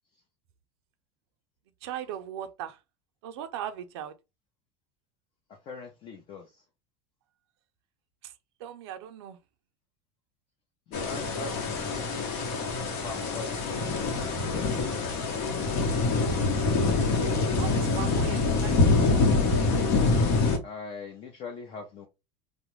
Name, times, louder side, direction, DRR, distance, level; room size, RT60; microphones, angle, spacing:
voice 1, 1.8-2.8 3.2-4.1 8.2-8.3 8.6-9.4 17.6-19.1, right 10 dB, 90° right, 0.4 m, -38 dB
voice 2, 5.6-6.6 10.9-12.4 13.0-13.6 20.6-22.1, left 4 dB, 40° left, 0.6 m, -41 dB
sound 1, 10.9-20.6, left 3 dB, 70° left, 0.9 m, -25 dB
2.4 x 2.0 x 3.0 m
supercardioid pair, 135°, 14 cm